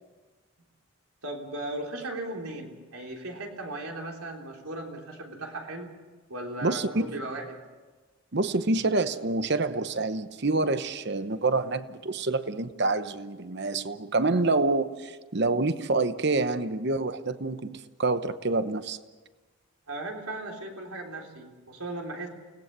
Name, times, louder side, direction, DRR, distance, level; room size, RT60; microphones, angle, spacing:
voice 1, 1.2-5.9 6.3-7.6 19.9-22.3, right 2 dB, 80° right, 1 dB, 3.6 m, -37 dB
voice 2, 6.6-7.0 8.3-19.0, right 3 dB, 50° right, 12 dB, 0.9 m, -27 dB
29.5 x 18.5 x 6.8 m, 1.3 s
head